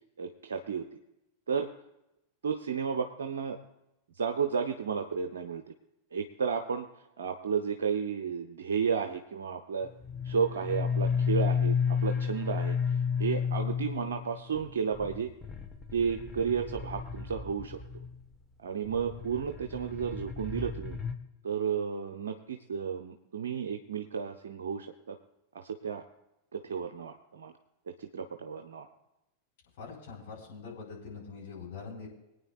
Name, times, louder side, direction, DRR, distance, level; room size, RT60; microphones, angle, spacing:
voice 1, 0.2-0.9 1.5-1.7 2.4-3.6 4.1-5.6 6.1-6.9 7.2-9.9 10.2-15.3 15.9-17.8 18.6-21.0 21.4-25.2 25.5-26.0 26.5-27.5 27.9-28.9, right 6 dB, 65° right, 6 dB, 0.7 m, -32 dB
sound 1, 10.0-18.2 18.8-21.1, left 6 dB, 5° left, 1.2 m, -32 dB
voice 2, 29.8-32.1, left 5 dB, 55° left, -3 dB, 4.5 m, -43 dB
24.5 x 9.3 x 2.4 m, 0.91 s
figure-of-eight pair, 90°, 0 cm